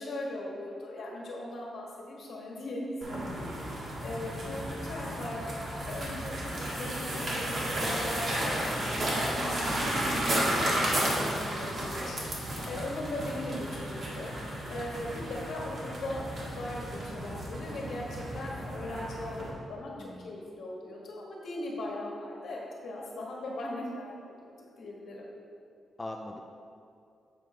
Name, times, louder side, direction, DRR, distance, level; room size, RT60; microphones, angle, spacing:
voice 1, 0.0-7.5 7.8-13.5 13.8-16.3 16.5-24.5 24.8-25.2, left 1 dB, 60° left, -3 dB, 1.5 m, -39 dB
sound 1, 3.0-19.5, right 1 dB, 45° right, 1.6 m, -33 dB
voice 2, 11.6-12.0 20.0-20.3 26.0-26.4, left 1 dB, 15° left, 1 dB, 0.3 m, -42 dB
7.5 x 4.7 x 4.9 m, 2.5 s
wide cardioid pair, 160°, 0 cm